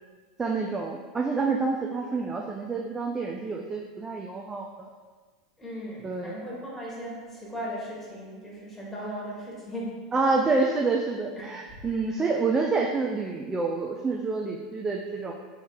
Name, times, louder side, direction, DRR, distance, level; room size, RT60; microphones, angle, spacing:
voice 1, 0.4-4.9 6.0-6.4 10.1-15.3, right 4 dB, 20° right, 1 dB, 0.4 m, -28 dB
voice 2, 5.6-10.0 11.3-11.7 12.1-12.2, equal, 10° left, -5 dB, 1.5 m, -37 dB
4.1 x 2.8 x 3.7 m, 1.4 s
hypercardioid pair, 85°, 3 cm